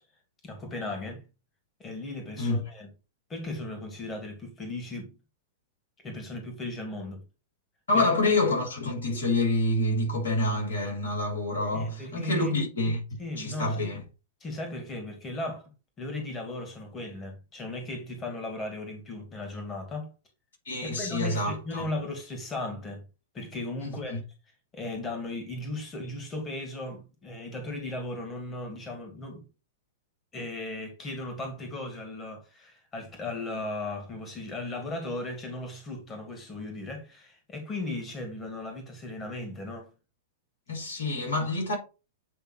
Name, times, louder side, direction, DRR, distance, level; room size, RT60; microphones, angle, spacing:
voice 1, 0.4-1.2 1.8-2.9 3.3-5.2 6.0-7.2 7.9-8.1 11.7-12.5 13.2-13.8 14.4-15.7 16.0-20.1 20.8-23.0 23.3-24.2 24.7-29.5 30.3-39.9, left 2 dB, 25° left, 2.1 m, -36 dB
voice 2, 7.9-14.0 20.7-21.9 23.8-24.2 40.7-41.8, left 2 dB, 75° left, 3.8 m, -27 dB
8.5 x 3.3 x 4.4 m
figure-of-eight pair, 100°, 0 cm